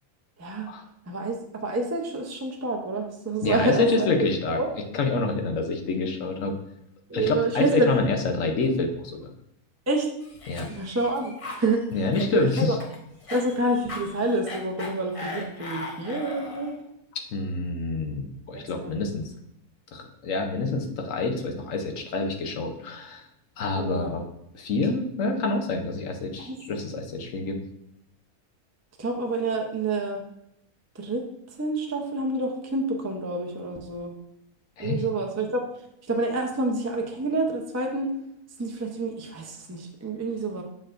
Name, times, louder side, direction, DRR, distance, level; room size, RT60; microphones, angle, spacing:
voice 1, 0.4-0.7 1.1-4.1 4.5-4.7 7.1-8.0 9.9-10.1 10.8-11.8 12.3-12.8 13.3-16.8 18.5-19.1 23.7-24.1 26.5-26.6 26.9-27.0 29.0-30.2 30.9-31.2 31.6-34.1 34.8-35.6 36.1-38.1 38.6-40.6, right 2 dB, 25° right, 2 dB, 0.3 m, -28 dB
voice 2, 3.4-4.6 4.9-6.5 7.1-9.3 10.5-10.7 11.9-12.8 17.3-19.2 19.9-23.2 23.6-24.2 24.5-27.6 34.8-35.0, left 3 dB, 65° left, 4 dB, 1.1 m, -27 dB
Cough, 10.2-16.8, left 2 dB, 30° left, 0.7 m, -38 dB
6.7 x 6.2 x 2.5 m, 0.80 s
omnidirectional pair, 1.6 m